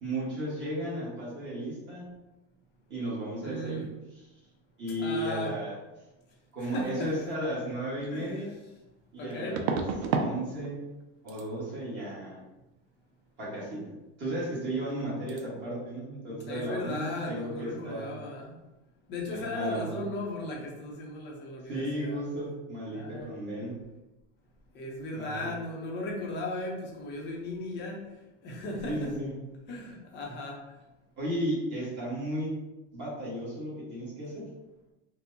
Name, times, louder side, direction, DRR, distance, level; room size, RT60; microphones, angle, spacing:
voice 1, 0.0-2.0 2.9-3.8 4.8-5.8 6.5-8.5 9.1-9.8 10.2-10.8 11.2-12.4 13.4-13.8 14.2-18.1 19.3-20.0 21.7-23.7 25.1-25.5 28.8-29.3 31.2-32.5 32.9-34.4, right 1 dB, 30° right, -8 dB, 1.2 m, -34 dB
voice 2, 3.4-3.8 5.0-5.6 6.6-7.3 8.1-8.4 9.2-9.7 16.5-18.5 19.1-22.2 22.9-23.3 24.7-28.1 28.4-29.1 29.7-30.6, left 2 dB, 30° left, -1 dB, 0.6 m, -36 dB
sound 1, 8.0-8.1 9.5-10.3 10.6-11.0 11.3-11.5 14.4-14.5 14.8-15.0 15.3-15.4, right 5 dB, 60° right, 0.5 m, -31 dB
4.4 x 2.1 x 2.6 m, 1.0 s
cardioid pair, 165°, 36 cm